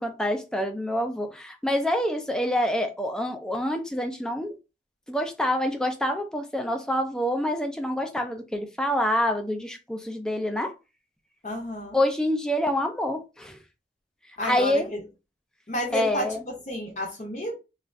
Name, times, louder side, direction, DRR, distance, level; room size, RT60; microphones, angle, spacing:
voice 1, 0.0-4.6 5.1-10.7 11.9-13.6 14.4-14.9 15.9-16.4, left 1 dB, 5° left, 0.4 m, -26 dB
voice 2, 11.4-12.0 14.4-15.0 15.7-17.6, left 1 dB, 40° left, 0.6 m, -31 dB
2.5 x 2.4 x 3.1 m
head